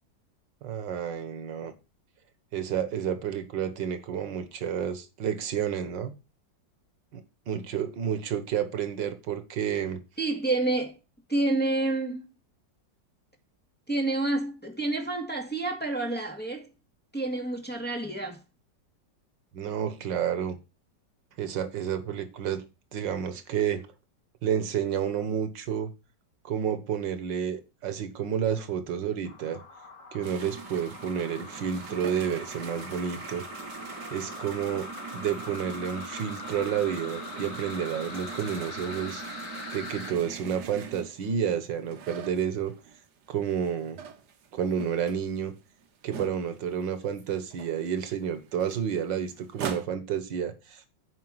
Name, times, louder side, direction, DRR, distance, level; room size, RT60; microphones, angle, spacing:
voice 1, 0.6-1.7 2.5-6.1 7.1-7.2 7.5-10.0 19.5-20.6 21.4-22.6 22.9-23.9 24.4-25.9 26.4-29.6 30.1-33.5 34.1-39.2 39.7-42.7 43.3-44.0 44.5-45.5 46.0-50.9, right 8 dB, 90° right, 1.9 m, -30 dB
voice 2, 10.2-10.9 11.3-12.3 13.9-16.7 17.1-18.4, right 2 dB, 5° left, 1.9 m, -28 dB
sound 1, 29.2-40.1, left 4 dB, 45° left, 2.2 m, -42 dB
sound 2, 30.2-43.0 43.4-46.9 47.2-47.3 47.5-49.9, right 7 dB, 65° right, 1.7 m, -42 dB
9.4 x 4.8 x 7.6 m
omnidirectional pair, 1.9 m